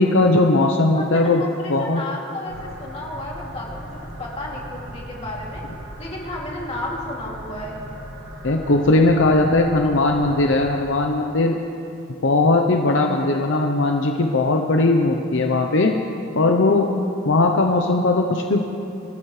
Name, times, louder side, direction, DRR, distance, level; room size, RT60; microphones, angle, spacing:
voice 1, 0.0-1.4 1.7-2.0 8.4-11.6 12.2-16.0 16.3-16.9 17.3-18.6, left 2 dB, 65° left, 3 dB, 0.8 m, -18 dB
voice 2, 1.0-3.9 4.2-5.6 6.0-7.8, left 1 dB, 30° left, -3 dB, 2.7 m, -32 dB
sound 1, 2.5-10.8, right 1 dB, 55° right, 1.8 m, -38 dB
26.0 x 14.0 x 3.3 m, 2.9 s
head